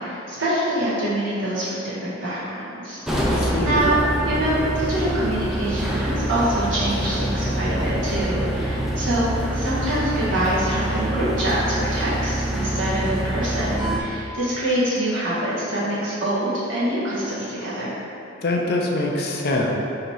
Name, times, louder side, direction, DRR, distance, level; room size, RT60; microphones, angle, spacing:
voice 1, 0.0-3.0 3.6-4.0 4.2-9.2 9.5-17.9, right 1 dB, 75° right, -9 dB, 1.4 m, -25 dB
sound 1, 3.0-14.0, right 1 dB, ahead, 0.4 m, -25 dB
voice 2, 3.1-3.9 18.4-19.7, left 2 dB, 55° left, 0 dB, 0.5 m, -24 dB
3.9 x 2.8 x 4.7 m, 2.7 s
head